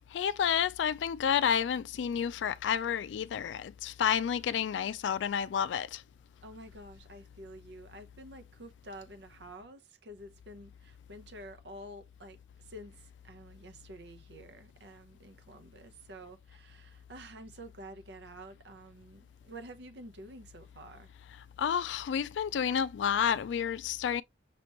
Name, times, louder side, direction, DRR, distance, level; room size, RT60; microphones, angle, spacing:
voice 1, 0.1-6.0 21.6-24.2, left 8 dB, 90° left, 0.3 m, -30 dB
voice 2, 6.4-21.1, right 1 dB, 75° right, 0.9 m, -49 dB
5.9 x 3.0 x 3.0 m
head